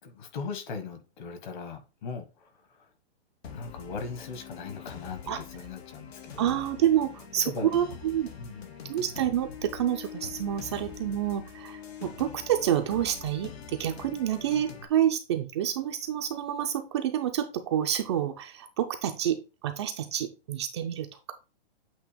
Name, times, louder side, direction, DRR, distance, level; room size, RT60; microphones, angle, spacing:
voice 1, 0.0-2.9 3.5-6.6 7.4-7.7 8.4-8.7, left 4 dB, 50° left, 1.7 m, -39 dB
sound 1, 3.4-14.9, left 7 dB, 75° left, 1.5 m, -44 dB
voice 2, 6.4-8.3 8.9-19.4 19.6-21.3, right 10 dB, 25° right, 0.4 m, -28 dB
8.4 x 2.8 x 5.0 m
hypercardioid pair, 160°, 31 cm